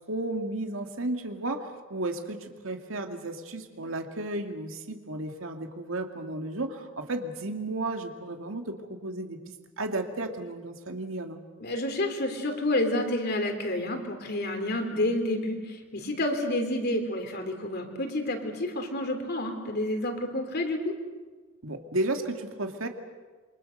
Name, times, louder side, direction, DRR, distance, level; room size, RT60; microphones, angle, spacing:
voice 1, 0.1-11.4 21.6-22.9, right 2 dB, 85° right, 4 dB, 2.2 m, -33 dB
voice 2, 11.6-20.9, left 1 dB, 55° left, 5 dB, 3.6 m, -29 dB
27.5 x 24.5 x 6.7 m, 1.3 s
head